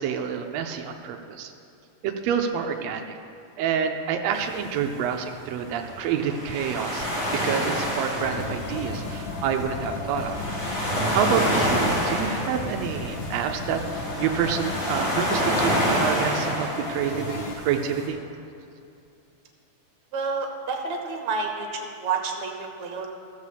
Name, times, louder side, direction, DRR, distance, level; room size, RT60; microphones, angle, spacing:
voice 1, 0.0-1.5 2.0-3.0 3.6-10.4 11.1-13.8 14.2-18.2, right 7 dB, 85° right, 4 dB, 1.5 m, -28 dB
sound 1, 4.3-18.1, equal, 25° left, 2.3 m, -28 dB
sound 2, 8.1-17.5, left 3 dB, 70° left, 2.0 m, -35 dB
voice 2, 20.1-23.1, right 4 dB, 65° right, 2 dB, 2.3 m, -29 dB
15.0 x 5.0 x 6.9 m, 2.5 s
omnidirectional pair, 3.6 m